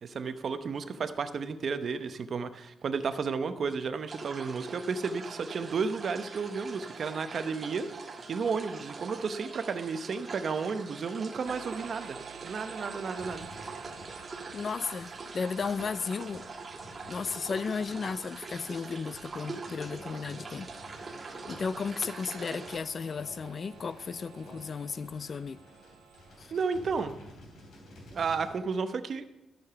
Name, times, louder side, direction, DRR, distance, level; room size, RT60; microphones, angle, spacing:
voice 1, 0.0-7.9 8.3-12.2 12.4-13.5 26.5-27.1 28.1-29.2, right 5 dB, 45° right, 0.8 m, -32 dB
sound 1, 4.1-22.8, right 4 dB, 30° right, 1.3 m, -43 dB
sound 2, 11.5-27.2, right 7 dB, 85° right, 1.1 m, -52 dB
sound 3, 13.2-28.6, equal, 75° left, 3.4 m, -52 dB
voice 2, 14.5-16.4 17.1-25.6 26.4-26.5, left 5 dB, 40° left, 0.3 m, -35 dB
13.0 x 6.8 x 6.9 m
wide cardioid pair, 160°, 0 cm